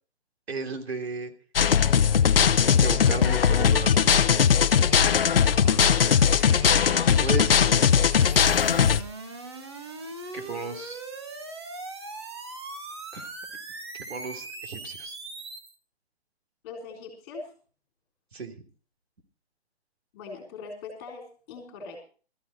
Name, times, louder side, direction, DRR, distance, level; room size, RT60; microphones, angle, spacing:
voice 1, 0.5-1.3 2.8-4.4 6.8-7.8 10.3-11.0 13.1-13.3 13.9-15.2 18.3-18.5, right 4 dB, 70° right, 5 dB, 3.1 m, -35 dB
sound 1, 1.6-9.0, left 7 dB, 60° left, 0.8 m, -20 dB
sound 2, 3.8-15.7, right 3 dB, 25° right, 1.2 m, -41 dB
voice 2, 5.5-6.2 16.6-17.5 20.1-22.0, left 4 dB, 15° left, 2 dB, 3.6 m, -41 dB
21.0 x 14.5 x 2.8 m, 0.39 s
hypercardioid pair, 180°, 32 cm